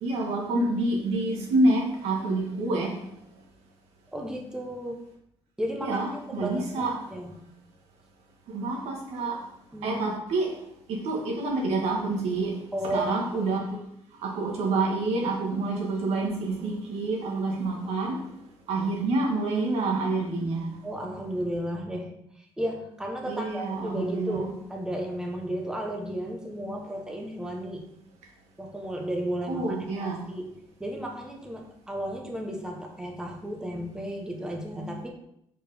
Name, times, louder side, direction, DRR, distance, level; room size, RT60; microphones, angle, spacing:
voice 1, 0.0-3.0 5.8-6.9 8.5-9.4 9.8-10.5 10.9-12.6 12.8-13.8 14.2-18.2 18.7-20.8 23.2-24.5 29.5-30.3, right 2 dB, 90° right, 0 dB, 1.6 m, -27 dB
voice 2, 4.1-5.1 5.6-7.3 9.7-10.0 12.7-13.1 20.8-27.9 28.6-30.5 30.8-35.1, equal, 5° right, 1 dB, 1.0 m, -34 dB
5.1 x 4.4 x 4.9 m, 0.75 s
cardioid pair, 125°, 10 cm